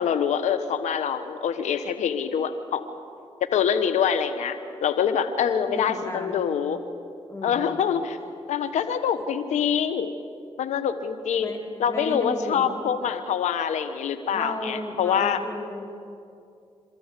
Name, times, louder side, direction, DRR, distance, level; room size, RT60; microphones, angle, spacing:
voice 1, 0.0-2.8 3.5-6.8 7.4-8.2 8.5-10.1 10.6-11.5 11.8-15.4, left 8 dB, 90° left, 10 dB, 1.2 m, -25 dB
voice 2, 5.6-6.4 7.3-7.7 11.4-11.6 11.9-12.9 14.3-15.8, left 1 dB, 25° left, 1 dB, 3.4 m, -34 dB
26.5 x 13.5 x 8.3 m, 2.5 s
cardioid pair, 50°, 12 cm